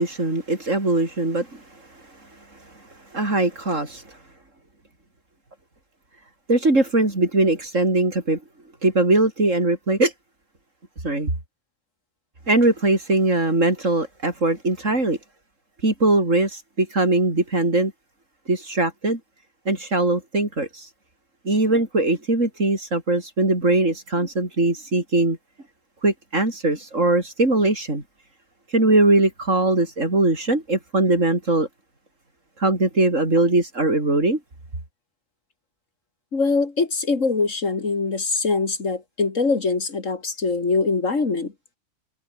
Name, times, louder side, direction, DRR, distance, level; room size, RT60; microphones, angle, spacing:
voice 1, 0.0-1.6 3.1-4.2 6.5-8.4 8.8-10.1 11.0-11.3 12.5-15.2 15.8-17.9 18.5-19.2 19.7-20.9 21.5-25.4 26.0-28.0 28.7-31.7 32.6-34.4, right 2 dB, 90° right, 5.9 m, -21 dB
voice 2, 36.3-41.5, left 4 dB, 90° left, 3.2 m, -23 dB
omnidirectional pair, 1.3 m